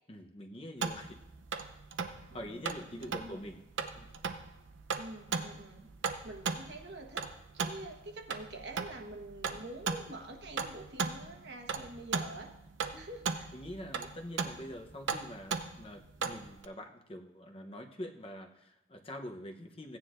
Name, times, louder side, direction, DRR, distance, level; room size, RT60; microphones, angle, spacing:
voice 1, 0.1-1.2 2.2-3.6 4.0-4.1 9.4-9.7 13.5-20.0, left 1 dB, 30° left, 3 dB, 0.8 m, -45 dB
sound 1, 0.8-16.6, right 5 dB, 85° right, 0.7 m, -38 dB
voice 2, 2.3-3.4 5.0-5.9 6.2-7.3 7.5-12.6 12.9-13.5, right 2 dB, 60° right, 4 dB, 1.2 m, -46 dB
16.5 x 9.6 x 2.5 m, 0.92 s
head